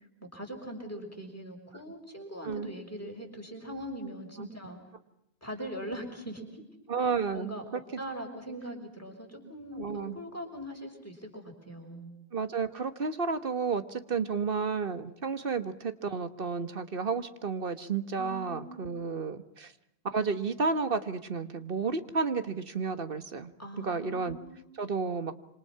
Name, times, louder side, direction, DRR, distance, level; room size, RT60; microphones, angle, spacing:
voice 1, 0.2-4.8 5.4-6.6 7.0-7.6 8.0-12.1 18.2-18.9 23.6-24.7, equal, 15° left, 1 dB, 5.8 m, -41 dB
voice 2, 6.9-7.8 9.8-10.2 12.3-19.7 20.1-23.5 23.8-24.4 24.8-25.3, right 5 dB, 60° right, 11 dB, 1.6 m, -32 dB
27.0 x 26.5 x 5.9 m, 0.78 s
omnidirectional pair, 1.0 m